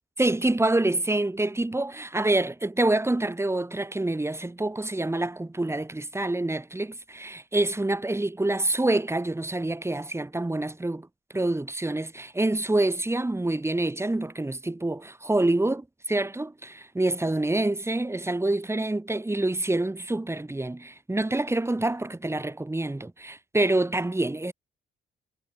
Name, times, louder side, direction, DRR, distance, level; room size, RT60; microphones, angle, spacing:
voice 1, 0.2-11.1 11.3-24.5, right 2 dB, 15° right, 7.2 m, -26 dB
cardioid pair, 90°, 20 cm